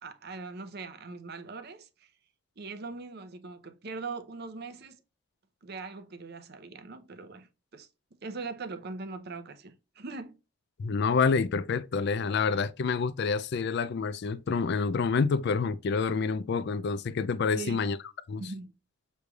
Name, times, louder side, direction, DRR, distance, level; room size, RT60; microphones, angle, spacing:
voice 1, 0.0-2.1 2.6-5.0 5.6-7.9 8.2-10.4 17.5-17.8 18.4-18.7, right 3 dB, 50° right, 0.6 m, -41 dB
voice 2, 10.8-18.0 18.3-18.4, left 5 dB, 50° left, 0.3 m, -28 dB
6.6 x 3.2 x 2.3 m
head